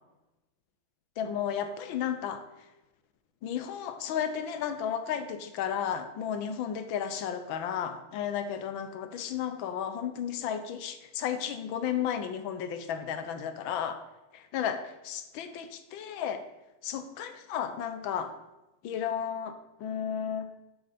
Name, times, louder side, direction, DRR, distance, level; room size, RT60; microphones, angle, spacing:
voice 1, 1.2-2.4 3.4-14.0 14.3-16.4 16.8-18.3 18.8-20.5, left 8 dB, 75° left, 9 dB, 1.4 m, -33 dB
7.8 x 6.3 x 5.0 m, 0.97 s
omnidirectional pair, 2.4 m